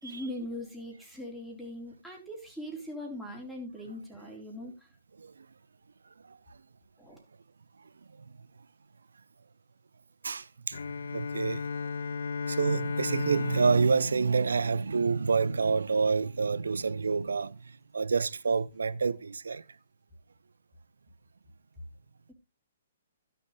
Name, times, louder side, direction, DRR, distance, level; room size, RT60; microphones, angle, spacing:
voice 1, 0.0-4.9 7.0-7.2, left 1 dB, ahead, 3.8 m, -40 dB
voice 2, 10.2-10.8 11.1-11.9 12.5-17.6 17.9-19.6, right 5 dB, 65° right, 0.5 m, -27 dB
Bowed string instrument, 10.7-15.4, left 5 dB, 60° left, 0.5 m, -35 dB
16.0 x 7.0 x 3.3 m
figure-of-eight pair, 120°, 0 cm